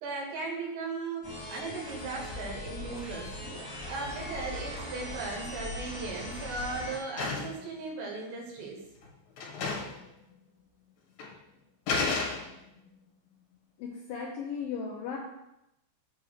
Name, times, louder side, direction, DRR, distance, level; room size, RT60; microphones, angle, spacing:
voice 1, 0.0-3.3 3.9-8.8, right 3 dB, 75° right, 0 dB, 3.7 m, -37 dB
sound 1, 1.2-7.0, left 1 dB, 5° left, 1.7 m, -40 dB
sound 2, 5.4-6.0 6.3-7.7 8.6-8.7 9.0-9.1 9.4-10.0 10.3-10.4 11.2-11.3 11.9-12.8, left 4 dB, 60° left, 2.9 m, -33 dB
voice 2, 13.8-15.2, left 6 dB, 75° left, -3 dB, 2.1 m, -36 dB
8.1 x 3.6 x 6.5 m, 0.87 s
omnidirectional pair, 5.1 m